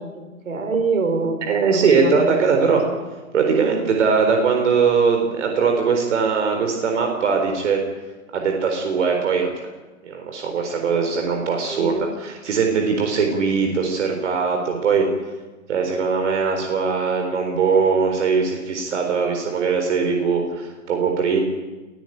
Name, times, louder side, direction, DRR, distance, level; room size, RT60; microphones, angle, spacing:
voice 1, 0.0-1.4 1.7-3.0 11.7-12.1, right 4 dB, 75° right, 6 dB, 5.1 m, -26 dB
voice 2, 1.5-2.8 3.3-7.8 8.3-9.7 10.0-15.1 15.7-21.4, right 5 dB, 60° right, 3 dB, 4.2 m, -20 dB
22.0 x 15.5 x 8.9 m, 1.2 s
hypercardioid pair, 120°, 40 cm